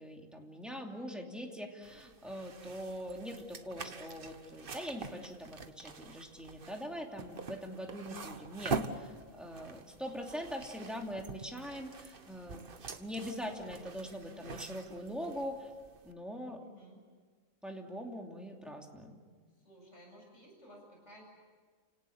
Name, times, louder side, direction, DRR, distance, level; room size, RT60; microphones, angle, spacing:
voice 1, 0.0-12.6 13.0-15.7 16.0-16.6 17.6-19.2, equal, ahead, 1 dB, 2.8 m, -42 dB
sound 1, 1.8-16.1, right 4 dB, 45° right, 1.3 m, -45 dB
voice 2, 16.6-17.0 19.6-21.2, equal, 65° left, -1 dB, 7.9 m, -55 dB
29.5 x 18.5 x 8.7 m, 1.5 s
omnidirectional pair, 1.4 m